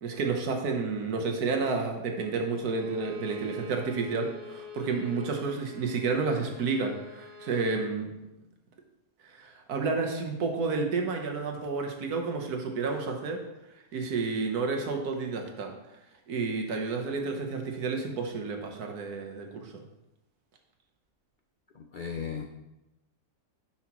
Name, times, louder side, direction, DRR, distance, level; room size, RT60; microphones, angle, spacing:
voice 1, 0.0-8.1 9.2-13.4 13.9-15.7 16.3-19.8, right 4 dB, 90° right, 3 dB, 1.6 m, -30 dB
Bowed string instrument, 2.6-7.7, left 2 dB, 45° right, 1.0 m, -47 dB
voice 2, 21.7-22.4, left 7 dB, 65° left, 3 dB, 0.4 m, -36 dB
9.9 x 5.9 x 3.0 m, 0.94 s
omnidirectional pair, 1.6 m